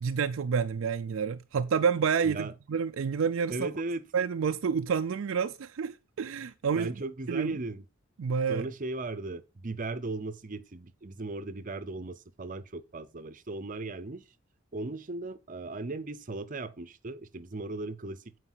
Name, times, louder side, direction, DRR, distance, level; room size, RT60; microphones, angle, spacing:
voice 1, 0.0-3.7 4.1-6.9 7.3-7.6 8.2-8.7, right 6 dB, 70° right, 0.4 m, -29 dB
voice 2, 3.5-4.1 6.8-7.8 8.5-14.2 14.7-18.2, right 2 dB, 40° right, 0.7 m, -37 dB
8.1 x 4.9 x 5.6 m
head